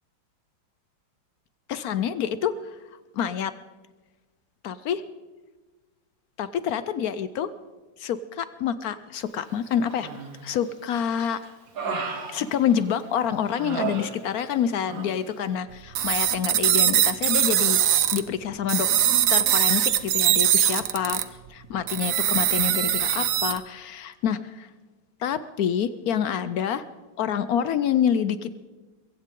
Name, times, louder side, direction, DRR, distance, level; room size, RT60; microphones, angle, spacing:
voice 1, 1.7-2.5 3.2-3.5 4.6-5.0 6.4-7.5 8.0-10.1 10.4-11.4 12.3-18.9 19.3-21.2 21.5-24.7 25.2-26.8 27.2-28.5, left 8 dB, 70° left, 14 dB, 0.9 m, -27 dB
Human voice, 9.9-10.5 10.9-13.1 13.5-14.6 14.8-15.1, right 5 dB, 80° right, 2.6 m, -34 dB
sound 1, 16.0-18.2 18.7-21.2 21.9-23.6, right 11 dB, 60° right, 0.9 m, -22 dB
22.5 x 15.5 x 3.7 m, 1.2 s
omnidirectional pair, 2.0 m